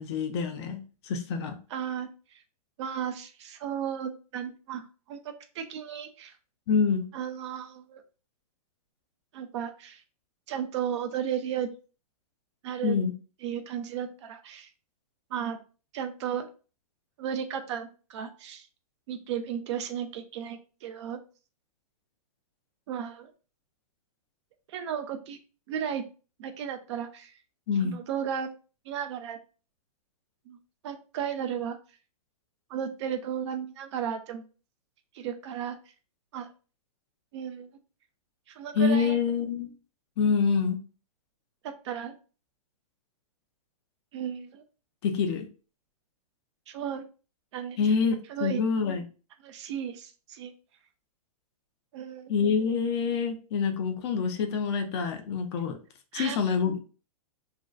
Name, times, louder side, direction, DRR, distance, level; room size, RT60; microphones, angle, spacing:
voice 1, 0.0-1.6 6.7-7.1 12.8-13.1 27.7-27.9 38.7-39.7 40.2-40.8 45.0-45.4 47.8-49.0 52.3-55.8 56.1-56.8, left 5 dB, 45° left, 6 dB, 0.4 m, -26 dB
voice 2, 1.7-2.1 2.8-5.2 5.5-6.4 7.1-8.0 9.3-10.0 10.5-11.7 12.6-13.0 13.4-14.7 15.3-15.6 15.9-16.5 17.2-18.7 19.1-21.2 22.9-23.3 24.7-25.4 25.7-26.0 26.4-27.3 27.8-28.5 28.9-29.4 30.5-30.6 30.8-31.8 32.7-34.5 35.1-35.8 36.3-36.5 37.3-37.7 38.5-39.2 41.6-42.1 44.1-44.6 46.7-47.0 47.5-47.9 48.3-48.6 49.4-50.5 51.9-52.3 56.1-56.4, right 8 dB, 45° right, 8 dB, 0.4 m, -34 dB
2.5 x 2.1 x 2.3 m, 0.35 s
hypercardioid pair, 130°, 20 cm